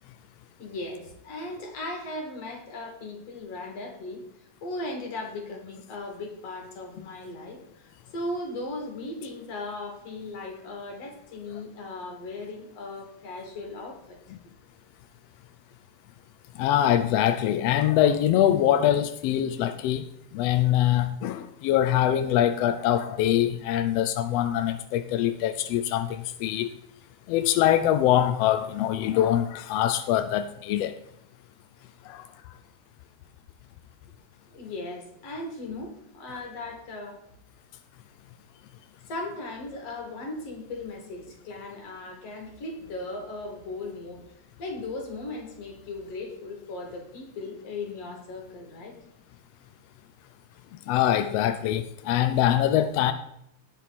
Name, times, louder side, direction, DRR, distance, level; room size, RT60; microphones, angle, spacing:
voice 1, 0.6-14.2 34.5-37.2 39.1-44.2 44.6-49.0, left 2 dB, 60° left, 1 dB, 3.4 m, -37 dB
voice 2, 16.5-26.7 27.3-30.9 32.0-32.3 50.9-53.1, left 11 dB, 80° left, 10 dB, 1.5 m, -23 dB
17.5 x 6.1 x 4.2 m, 0.78 s
omnidirectional pair, 3.3 m